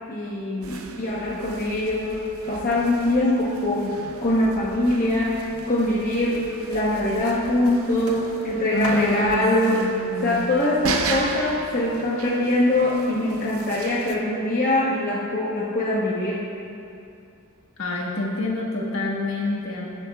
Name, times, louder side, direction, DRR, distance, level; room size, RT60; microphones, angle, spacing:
voice 1, 0.1-9.8 10.2-16.5, left 1 dB, 35° left, -6 dB, 1.0 m, -23 dB
sound 1, 0.6-14.2, right 3 dB, 70° right, 0.7 m, -36 dB
voice 2, 8.7-10.4 17.8-19.9, left 2 dB, 60° left, -3 dB, 1.5 m, -27 dB
20.0 x 7.4 x 2.4 m, 2.6 s
head